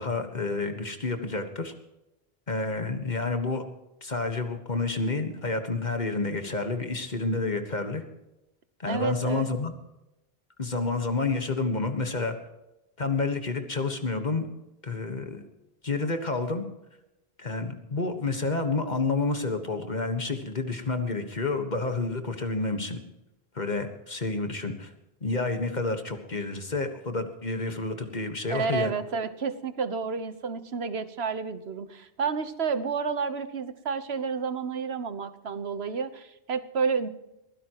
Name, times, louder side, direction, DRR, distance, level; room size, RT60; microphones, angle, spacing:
voice 1, 0.0-1.7 2.5-3.6 4.0-8.0 8.8-9.7 10.6-12.4 13.0-14.5 14.8-15.5 15.8-16.6 17.4-23.0 23.5-24.9 25.2-28.9, left 3 dB, 45° left, 6 dB, 1.6 m, -29 dB
voice 2, 8.9-9.6 28.5-37.1, right 5 dB, 80° right, 11 dB, 1.4 m, -30 dB
22.5 x 16.0 x 3.0 m, 0.94 s
omnidirectional pair, 1.0 m